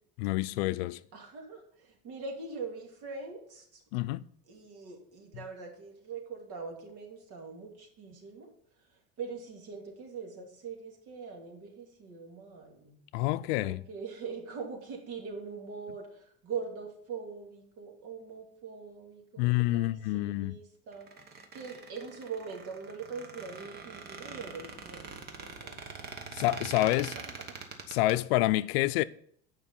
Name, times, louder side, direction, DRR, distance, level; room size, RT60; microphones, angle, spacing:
voice 1, 0.2-1.0 3.9-4.2 13.1-13.8 19.4-20.6 26.3-27.1 27.9-29.0, left 17 dB, 80° left, 0.5 m, -28 dB
voice 2, 1.1-3.8 4.5-8.5 9.2-13.0 13.5-21.1 21.5-26.2 26.7-26.8 27.1-27.2, right 5 dB, 50° right, 2.5 m, -42 dB
Squeak, 20.9-28.1, right 5 dB, 35° right, 1.2 m, -44 dB
9.5 x 5.2 x 5.5 m
cardioid pair, 140°, 30 cm